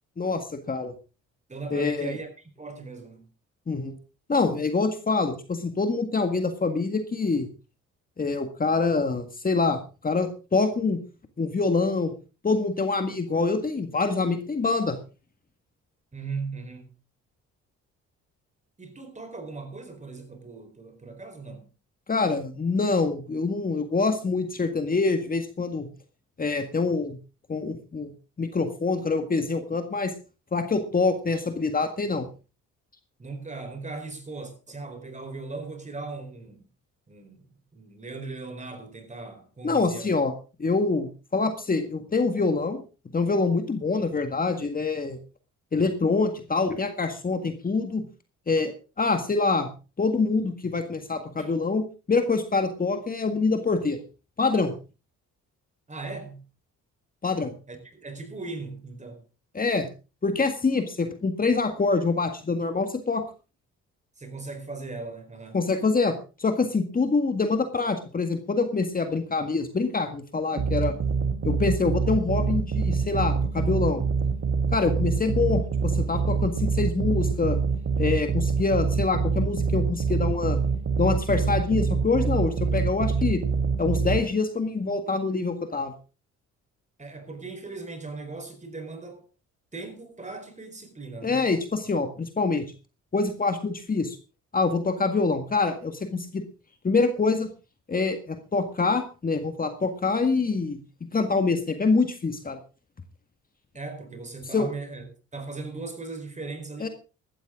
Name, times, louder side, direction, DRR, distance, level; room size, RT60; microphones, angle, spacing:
voice 1, 0.2-0.9 1.7-2.2 3.7-4.0 4.3-7.5 8.2-11.0 11.4-12.1 12.4-15.0 22.1-25.9 26.4-27.2 27.5-28.1 28.4-30.1 30.5-32.3 39.6-40.3 40.6-42.8 43.1-45.2 45.7-48.0 48.5-48.7 49.0-49.7 50.0-54.0 54.4-54.7 57.2-57.5 59.5-59.9 60.2-63.2 65.5-70.9 71.4-74.0 74.7-77.6 78.0-80.6 81.0-83.4 83.8-85.9 91.2-92.7 93.1-94.2 94.5-96.4 96.8-97.5 97.9-100.8 101.1-102.6 104.5-104.7 106.8-106.9, left 4 dB, 30° left, 1.8 m, -25 dB
voice 2, 1.5-2.3 2.6-3.3 16.1-16.9 18.8-21.7 33.2-36.6 37.1-37.4 37.7-40.1 51.4-51.6 55.9-56.4 57.7-59.2 64.2-65.6 87.0-89.2 89.7-91.4 103.7-105.0 105.3-106.9, right 3 dB, 25° right, 4.2 m, -38 dB
sound 1, 70.6-84.2, right 5 dB, 45° right, 2.1 m, -25 dB
15.0 x 13.0 x 3.8 m
cardioid pair, 90°, 30 cm